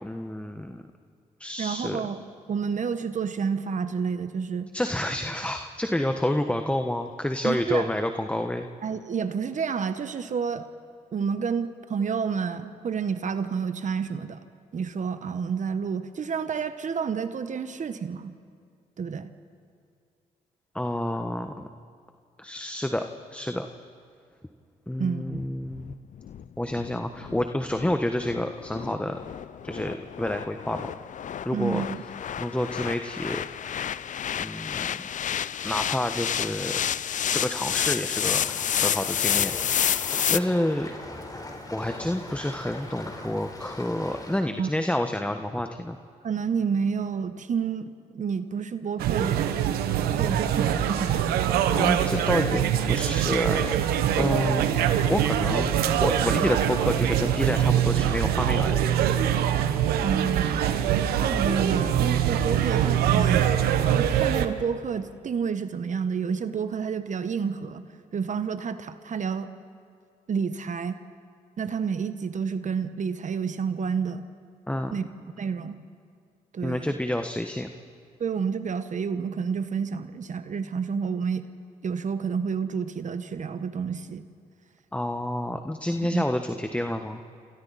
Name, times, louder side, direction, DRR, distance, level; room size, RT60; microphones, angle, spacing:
voice 1, 0.0-0.8 1.4-2.0 4.7-8.7 20.7-21.7 22.4-23.0 23.3-23.7 24.9-26.0 26.6-29.2 29.6-30.9 31.4-31.8 32.4-33.4 34.4-34.9 35.6-36.7 37.2-38.4 38.8-40.0 40.3-40.9 41.7-46.0 51.6-53.7 54.2-54.7 55.1-55.7 56.0-58.8 74.7-74.9 76.6-77.7 84.9-87.2, left 1 dB, 10° left, 6 dB, 1.3 m, -29 dB
voice 2, 1.6-2.2 2.5-4.7 7.4-7.9 8.8-10.7 11.1-14.4 14.7-18.3 19.0-19.3 25.0-25.4 31.5-32.0 44.6-44.7 46.2-49.6 50.1-51.2 54.1-54.3 60.0-60.5 61.2-63.5 63.9-67.9 68.1-69.5 70.3-71.0 71.6-74.2 74.9-75.1 75.4-75.8 76.5-76.9 78.2-81.5 81.8-84.3 86.1-86.2, right 6 dB, 55° right, 11 dB, 1.2 m, -29 dB
sound 1, 25.3-40.4, left 9 dB, 55° left, 0.5 m, -30 dB
sound 2, 38.4-44.4, left 2 dB, 25° left, 4.1 m, -40 dB
sound 3, 49.0-64.5, right 10 dB, 85° right, 1.0 m, -23 dB
28.0 x 26.5 x 4.2 m, 2.3 s
supercardioid pair, 55°, 16 cm